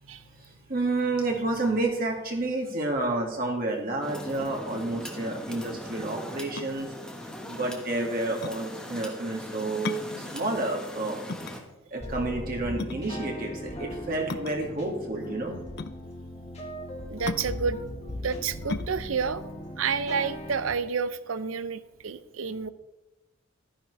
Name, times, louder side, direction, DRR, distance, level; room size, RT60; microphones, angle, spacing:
voice 1, 0.0-6.9 7.5-11.2 11.9-15.6, right 2 dB, 45° right, 0 dB, 2.1 m, -30 dB
sound 1, 4.0-11.6, equal, 5° left, 1.3 m, -40 dB
sound 2, 6.6-20.8, left 4 dB, 50° left, 0.5 m, -39 dB
sound 3, 12.0-20.7, equal, 30° left, 1.8 m, -38 dB
voice 2, 17.1-17.8 18.2-19.5 19.8-22.7, right 5 dB, 85° right, 14 dB, 0.6 m, -30 dB
13.5 x 10.0 x 3.3 m, 1.0 s
head